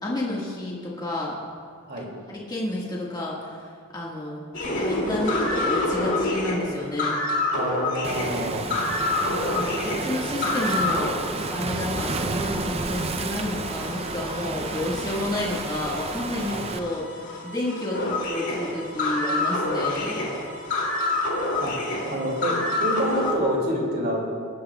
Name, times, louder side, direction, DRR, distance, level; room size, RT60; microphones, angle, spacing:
voice 1, 0.0-1.4 2.3-7.2 8.2-8.3 9.3-11.2 11.5-20.3, left 1 dB, 20° left, -5 dB, 1.6 m, -30 dB
sound 1, 4.5-11.1 11.4-23.3, left 2 dB, 60° left, 2.5 m, -28 dB
voice 2, 7.5-8.8 16.5-16.6 21.6-21.7 22.0-24.3, equal, 45° right, -1 dB, 2.5 m, -27 dB
Waves surf, 8.0-16.8, right 3 dB, 30° right, 0.5 m, -31 dB
19.5 x 11.5 x 2.3 m, 2.1 s
head